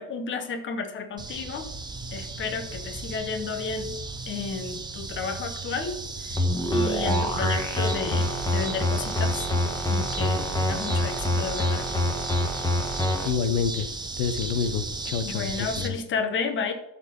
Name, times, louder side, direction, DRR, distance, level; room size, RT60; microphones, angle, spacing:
voice 1, 0.0-1.6 2.1-3.9 4.3-6.0 6.7-9.5 9.9-11.9 15.2-16.7, left 5 dB, 25° left, 6 dB, 1.0 m, -32 dB
sound 1, 1.2-15.9, right 3 dB, 10° right, 0.7 m, -35 dB
sound 2, 6.3-13.3, left 1 dB, 10° left, 1.3 m, -26 dB
voice 2, 13.2-13.9 14.2-16.0, left 6 dB, 90° left, 10 dB, 1.1 m, -28 dB
12.5 x 4.5 x 5.4 m, 0.85 s
cardioid pair, 155°, 44 cm